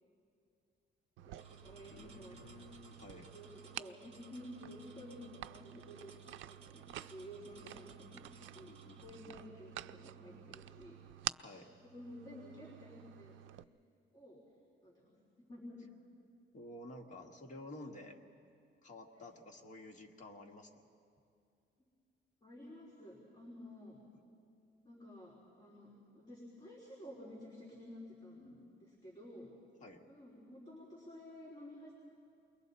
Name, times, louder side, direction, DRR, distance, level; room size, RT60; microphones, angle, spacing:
sound 1, 1.2-13.6, right 13 dB, 85° right, 0.4 m, -49 dB
voice 1, 1.3-2.4 3.3-6.1 6.5-11.3 11.8-13.5 14.1-14.4 14.8-15.9 19.1-19.2 21.8-21.9 22.4-24.0 24.8-29.5 30.0-31.9, left 1 dB, 20° left, -5 dB, 3.6 m, -52 dB
sound 2, 1.4-9.2, right 5 dB, 30° right, 1.5 m, -62 dB
sound 3, 1.5-5.5, equal, ahead, 6.8 m, -68 dB
voice 2, 1.9-3.3 8.6-9.4 11.4-11.7 16.5-18.2 18.8-20.8 29.8-30.0, left 1 dB, 40° left, 1 dB, 1.8 m, -52 dB
29.0 x 22.0 x 4.1 m, 2.4 s
cardioid pair, 140°, 20 cm